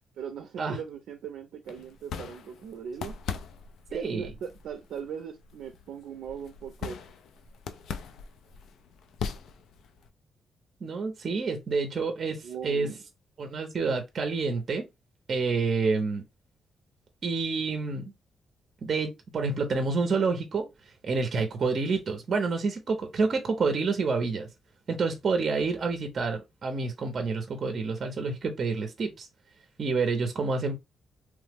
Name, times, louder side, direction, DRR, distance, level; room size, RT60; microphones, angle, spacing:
voice 1, 0.2-3.1 3.9-7.0 12.4-13.0, right 7 dB, 90° right, 0.5 m, -39 dB
sound 1, 1.7-10.1, left 7 dB, 80° left, 0.4 m, -41 dB
voice 2, 3.9-4.3 10.8-12.9 13.4-14.9 15.3-16.2 17.2-18.1 18.8-24.5 24.9-29.3 29.8-30.8, right 4 dB, 40° right, 0.5 m, -28 dB
3.0 x 2.0 x 3.3 m
wide cardioid pair, 170°, 0 cm